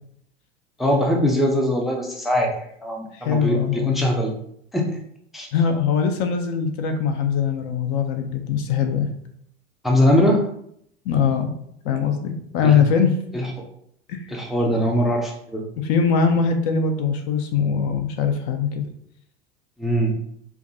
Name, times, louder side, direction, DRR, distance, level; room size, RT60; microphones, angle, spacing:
voice 1, 0.8-4.3 4.7-5.0 5.3-5.5 9.8-10.5 12.6-12.8 13.3-13.5 14.3-15.6 19.8-20.2, equal, ahead, 1 dB, 0.5 m, -21 dB
voice 2, 3.1-4.0 5.5-9.1 11.1-11.5 11.8-13.1 14.1-14.2 15.8-18.8, left 6 dB, 45° left, 6 dB, 0.6 m, -21 dB
4.5 x 2.2 x 2.6 m, 0.71 s
hypercardioid pair, 85°, 33 cm